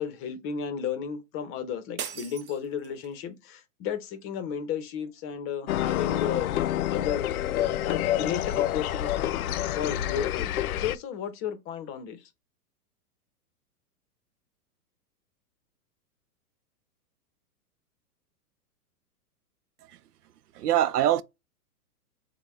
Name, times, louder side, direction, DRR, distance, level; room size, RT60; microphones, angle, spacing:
voice 1, 0.0-7.3 7.8-9.4 9.7-12.2, left 8 dB, 30° left, 0.8 m, -33 dB
sound 1, 2.0-3.2, right 8 dB, 25° right, 0.6 m, -39 dB
sound 2, 5.7-11.0, left 12 dB, 65° left, 0.5 m, -28 dB
voice 2, 20.5-21.2, right 12 dB, 75° right, 0.6 m, -24 dB
6.6 x 2.3 x 3.2 m
hypercardioid pair, 125°, 46 cm